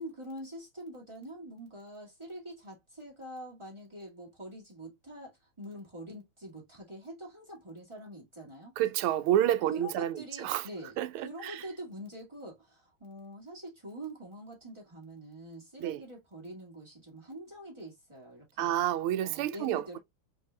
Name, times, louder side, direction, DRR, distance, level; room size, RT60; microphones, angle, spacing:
voice 1, 0.0-8.7 9.7-18.7 19.2-20.0, right 1 dB, 15° right, 1.8 m, -45 dB
voice 2, 8.8-10.7 11.0-11.7 15.8-16.0 18.6-20.0, right 12 dB, 90° right, 1.5 m, -29 dB
4.6 x 3.7 x 2.3 m
omnidirectional pair, 2.3 m